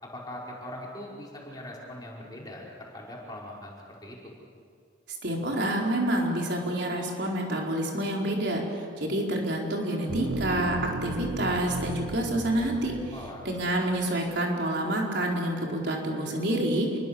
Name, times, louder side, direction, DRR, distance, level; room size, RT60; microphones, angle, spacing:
voice 1, 0.0-4.3 13.1-13.5, left 1 dB, 20° left, -4 dB, 5.5 m, -41 dB
voice 2, 5.2-13.0 13.4-17.0, right 1 dB, 60° right, -1 dB, 4.6 m, -28 dB
sound 1, 10.1-14.0, right 2 dB, 85° right, 1.0 m, -36 dB
28.0 x 23.5 x 7.1 m, 2.2 s
head